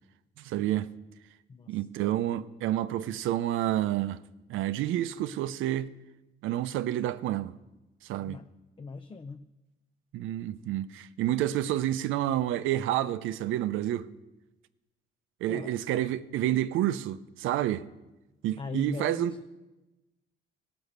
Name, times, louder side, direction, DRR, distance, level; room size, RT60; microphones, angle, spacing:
voice 1, 0.4-0.9 1.7-4.2 4.5-5.9 6.4-7.5 8.0-8.4 10.1-14.1 15.4-17.9 18.4-19.3, right 13 dB, 85° right, 0.5 m, -29 dB
voice 2, 1.5-1.8 8.2-8.5 8.8-9.5 15.5-15.7 18.6-19.4, left 4 dB, 25° left, 0.5 m, -39 dB
16.5 x 6.0 x 6.6 m
cardioid pair, 90°, 20 cm